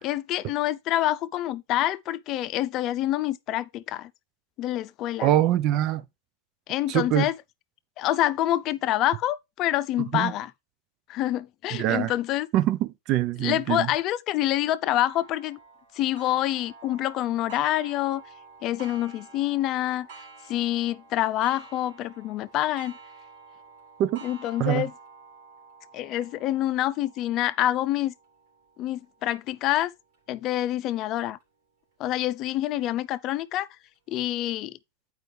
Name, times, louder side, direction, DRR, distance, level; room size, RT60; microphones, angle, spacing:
voice 1, 0.0-4.1 4.6-5.3 6.7-7.3 8.0-10.5 11.1-12.5 13.4-15.6 15.9-18.2 18.6-20.1 20.5-22.9 24.2-24.9 25.9-28.1 28.8-29.9 30.3-31.4 32.0-33.7 34.1-34.8, left 14 dB, 45° left, 0.5 m, -27 dB
voice 2, 5.2-6.0 6.9-7.3 10.1-10.3 11.7-12.1 12.5-13.9 24.0-24.2 24.6-24.9, right 13 dB, 50° right, 0.5 m, -24 dB
Clock, 14.9-30.2 30.8-30.9 31.4-31.5 32.5-32.6, right 4 dB, 70° right, 3.1 m, -50 dB
9.0 x 4.7 x 3.4 m
hypercardioid pair, 95°, 0 cm